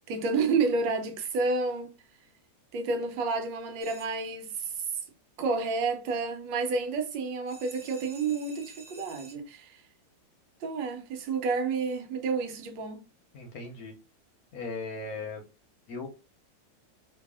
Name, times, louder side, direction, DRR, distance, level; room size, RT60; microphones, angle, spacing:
voice 1, 0.1-1.9 2.7-4.9 5.4-9.8 10.6-13.0, right 4 dB, 80° right, 1.5 m, -30 dB
sound 1, 3.8-4.6 7.5-9.3, right 3 dB, 40° right, 1.4 m, -51 dB
voice 2, 13.3-13.9 14.5-15.4 15.9-16.1, left 3 dB, 60° left, 1.1 m, -37 dB
3.1 x 2.7 x 3.5 m
omnidirectional pair, 2.0 m